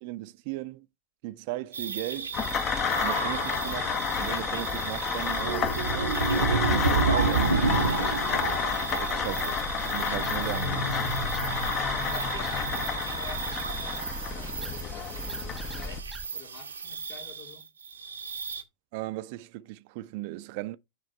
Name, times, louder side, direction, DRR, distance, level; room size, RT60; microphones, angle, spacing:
voice 1, 0.0-0.9 1.2-2.4 3.0-8.1 9.0-9.6 9.9-10.8 18.9-20.8, right 17 dB, 45° right, 0.6 m, -37 dB
sound 1, 1.7-18.6, right 4 dB, 75° right, 1.0 m, -31 dB
sound 2, 2.3-16.0, left 7 dB, 30° left, 0.9 m, -31 dB
sound 3, 8.9-16.3, right 1 dB, ahead, 0.6 m, -43 dB
voice 2, 12.1-17.7, left 8 dB, 50° left, 2.1 m, -48 dB
9.7 x 3.3 x 4.1 m
figure-of-eight pair, 90°, 0 cm